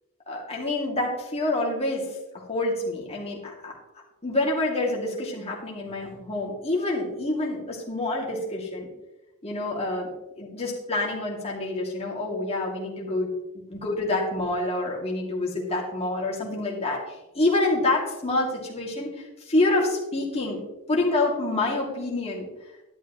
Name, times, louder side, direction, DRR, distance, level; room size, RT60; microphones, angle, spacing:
voice 1, 0.3-2.0 2.3-3.7 4.2-8.9 9.4-10.1 10.4-13.3 13.7-17.0 17.3-19.1 19.5-20.6 20.9-22.5, left 2 dB, 30° left, -3 dB, 2.5 m, -27 dB
11.5 x 11.5 x 3.1 m, 1.0 s
head